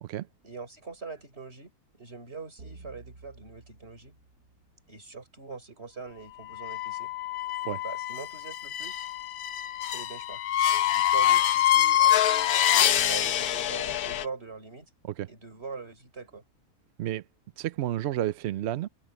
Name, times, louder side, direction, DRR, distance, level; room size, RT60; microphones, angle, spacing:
voice 1, 0.4-1.7 2.0-4.1 4.9-7.1 7.8-9.1 9.8-10.4 10.9-12.8 13.0-14.9 15.3-16.4, right 4 dB, 40° right, 4.8 m, -43 dB
sound 1, 2.6-5.1, right 3 dB, 90° right, 2.2 m, -51 dB
sound 2, 6.5-14.2, left 11 dB, 75° left, 1.2 m, -25 dB
voice 2, 17.6-18.9, right 12 dB, 70° right, 0.6 m, -31 dB
omnidirectional pair, 1.6 m